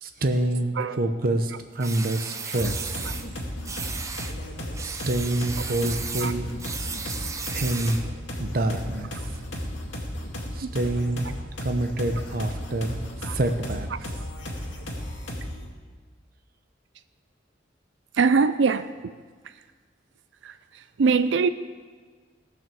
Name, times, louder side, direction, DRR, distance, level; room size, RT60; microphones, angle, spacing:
voice 1, 0.0-3.2 4.8-6.5 6.9-7.0 7.4-8.0 8.4-9.1 10.5-11.3 11.6-13.0 13.3-13.9, right 1 dB, 50° right, 6 dB, 0.8 m, -27 dB
sound 1, 1.8-3.3 3.6-4.4 4.7-8.1, right 5 dB, 15° right, 0.6 m, -35 dB
sound 2, 2.5-15.7, left 1 dB, 85° left, 2.2 m, -34 dB
voice 2, 18.1-19.1 20.4-21.5, right 5 dB, 75° right, 12 dB, 0.4 m, -23 dB
18.0 x 6.1 x 7.0 m, 1.5 s
head